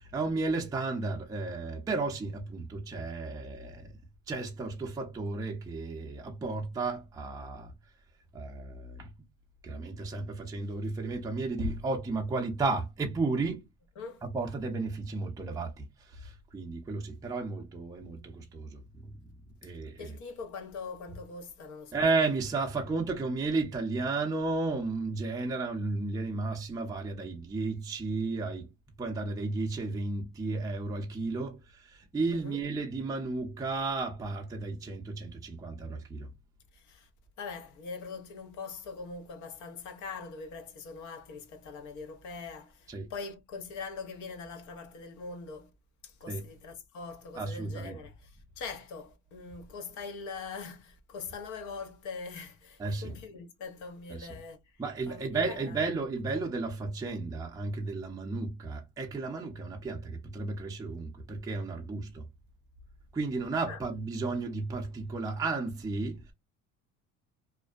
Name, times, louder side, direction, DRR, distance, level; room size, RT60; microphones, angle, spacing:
voice 1, 0.0-3.9 4.3-7.7 8.3-9.1 9.6-13.6 14.2-19.1 19.6-20.2 21.9-28.7 29.0-36.3 42.9-43.1 46.3-46.4 47.3-48.0 52.8-53.2 54.1-54.3 54.8-62.2 63.1-66.3, right 3 dB, 10° right, 0.5 m, -33 dB
voice 2, 20.0-22.1 32.3-32.6 36.7-37.1 37.4-45.7 46.0-54.8 55.1-55.8 63.7-63.8, left 4 dB, 70° left, 0.9 m, -42 dB
2.5 x 2.1 x 2.3 m
cardioid pair, 135°, 31 cm